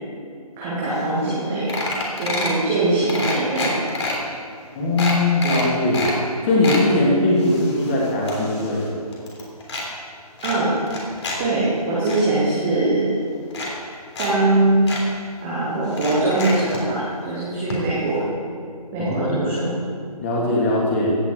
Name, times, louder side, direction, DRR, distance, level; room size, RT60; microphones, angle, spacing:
voice 1, 0.6-1.7 2.2-3.8 10.4-10.7 11.4-13.1 14.2-14.9 15.4-18.2 18.9-19.7, right 2 dB, 5° right, -9 dB, 0.4 m, -21 dB
sound 1, 1.0-1.1 1.3-1.4 1.7-2.6 3.1-4.1 4.6-4.7 5.0-6.2 6.4-6.8 7.4-8.9 9.1-9.8 10.4-11.4 11.7-12.2 13.0-13.1 13.5-14.3 14.5-14.6 14.9-15.0 15.9-16.8 17.7-17.8 18.1-18.2, left 2 dB, 45° left, 3.3 m, -28 dB
voice 2, 4.7-6.1 6.4-8.9 19.0-19.5 20.2-21.2, left 2 dB, 20° left, -4 dB, 2.8 m, -20 dB
16.0 x 5.9 x 8.3 m, 2.3 s
figure-of-eight pair, 155°, 20 cm